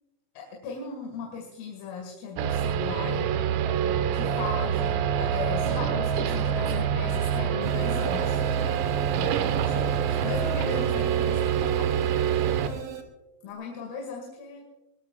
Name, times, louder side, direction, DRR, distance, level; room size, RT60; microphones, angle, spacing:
voice 1, 0.4-3.3 4.1-8.4 9.7-11.9 13.4-14.6, left 4 dB, 85° left, 0 dB, 4.9 m, -37 dB
sound 1, 2.4-12.7, right 8 dB, 90° right, 3.8 m, -26 dB
sound 2, 7.6-13.0, right 11 dB, 70° right, 2.0 m, -38 dB
21.5 x 19.0 x 2.4 m, 0.98 s
omnidirectional pair, 5.9 m